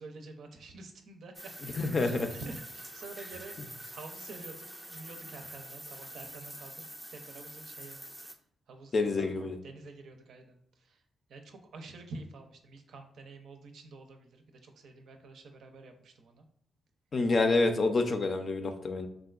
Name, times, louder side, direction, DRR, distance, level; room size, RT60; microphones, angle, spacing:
voice 1, 0.0-1.3 2.0-3.6 3.8-6.8 7.1-8.0 8.7-9.3 9.6-10.6 11.3-14.3 14.6-16.4, right 3 dB, 75° right, 6 dB, 0.5 m, -48 dB
sound 1, 1.4-8.3, right 1 dB, 5° right, 0.4 m, -46 dB
voice 2, 1.6-2.3 8.9-9.6 17.1-19.1, left 3 dB, 50° left, 6 dB, 0.5 m, -28 dB
3.6 x 2.2 x 2.4 m, 0.72 s
cardioid pair, 65°, 0 cm